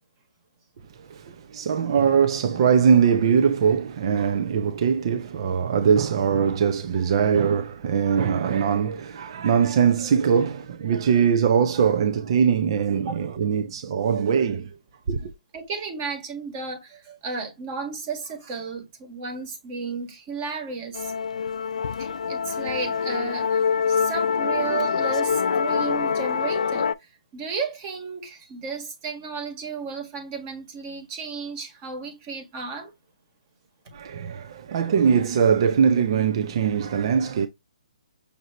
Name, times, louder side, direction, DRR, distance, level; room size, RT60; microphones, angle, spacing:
voice 1, 1.0-14.7 15.1-15.3 33.9-37.5, right 7 dB, 40° right, 0.6 m, -21 dB
voice 2, 15.5-21.1 22.0-23.6 23.9-26.9 27.3-32.9, right 4 dB, 25° right, 1.5 m, -33 dB
Musical instrument, 20.9-26.9, left 6 dB, 70° left, 0.4 m, -25 dB
6.6 x 2.8 x 2.9 m
hypercardioid pair, 160°, 4 cm